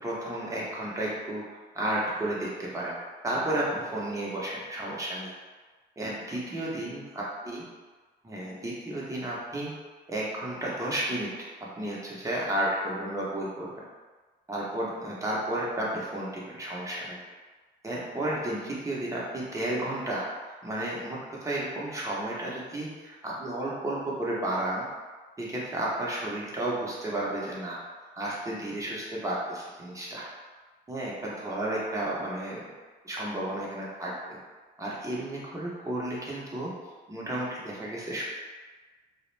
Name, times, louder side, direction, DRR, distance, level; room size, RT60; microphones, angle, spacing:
voice 1, 0.0-1.4 1.7-2.9 3.2-5.3 6.0-7.6 8.2-9.7 10.1-11.3 11.6-13.7 14.5-17.2 17.8-20.3 20.6-24.9 25.4-27.8 28.2-30.2 30.9-32.6 33.0-34.4 34.8-36.7 37.1-38.2, right 1 dB, 15° right, -5 dB, 0.7 m, -32 dB
2.2 x 2.1 x 3.1 m, 1.4 s
cardioid pair, 90°, 20 cm